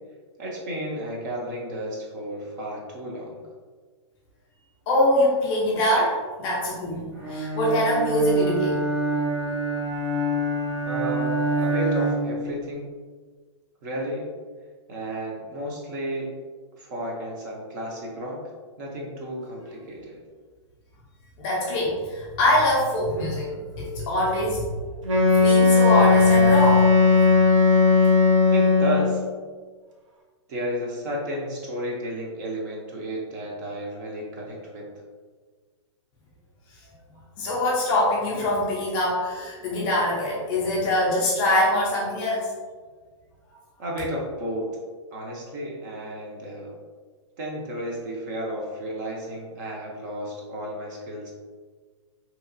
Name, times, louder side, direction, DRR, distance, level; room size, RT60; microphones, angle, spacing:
voice 1, 0.4-3.4 10.8-12.8 13.8-14.3 14.9-16.3 16.8-18.4 18.8-20.2 28.5-29.2 30.5-34.9 43.8-44.7 45.1-46.7 47.4-51.3, equal, 40° right, -2 dB, 0.6 m, -32 dB
voice 2, 4.9-8.8 21.4-24.9 25.3-26.9 37.1-42.5, left 1 dB, 20° left, -4 dB, 0.4 m, -24 dB
Bowed string instrument, 7.2-12.4, right 2 dB, 55° right, 1.4 m, -26 dB
Wind instrument woodwind instrument, 25.0-29.2, left 4 dB, 80° right, 0.7 m, -17 dB
2.9 x 2.3 x 2.5 m, 1.5 s
hypercardioid pair, 160°, 16 cm